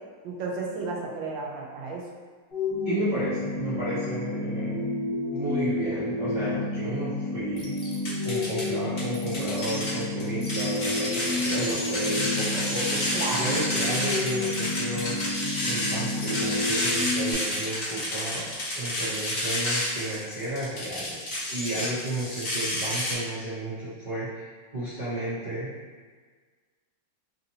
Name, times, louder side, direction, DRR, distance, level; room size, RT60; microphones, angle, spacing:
voice 1, 0.2-2.0 13.1-13.6 21.8-21.9, right 3 dB, 80° right, -2 dB, 1.4 m, -33 dB
sound 1, 2.5-17.3, left 2 dB, 20° left, 0.9 m, -30 dB
voice 2, 2.8-4.8 5.3-7.7 8.2-15.1 15.6-24.5 24.7-25.7, right 1 dB, 50° right, -12 dB, 0.5 m, -33 dB
sound 2, 7.6-8.6 9.0-23.1, left 1 dB, 85° left, 0.4 m, -30 dB
3.3 x 2.7 x 2.8 m, 1.5 s
omnidirectional pair, 2.1 m